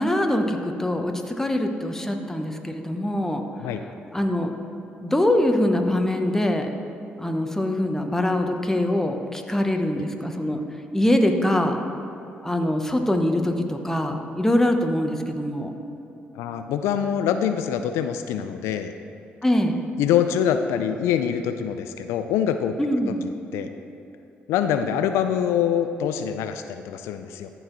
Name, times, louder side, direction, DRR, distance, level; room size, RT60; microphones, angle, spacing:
voice 1, 0.0-3.4 4.1-4.5 5.0-6.7 7.2-10.6 10.9-11.8 12.4-15.7 19.4-19.8 22.8-23.2, left 1 dB, 10° left, 4 dB, 1.0 m, -23 dB
voice 2, 16.3-18.9 20.0-22.7 23.1-23.2 23.5-23.7 24.5-27.5, left 9 dB, 90° left, 9 dB, 0.3 m, -24 dB
13.5 x 4.6 x 3.9 m, 2.8 s
supercardioid pair, 60°, 5 cm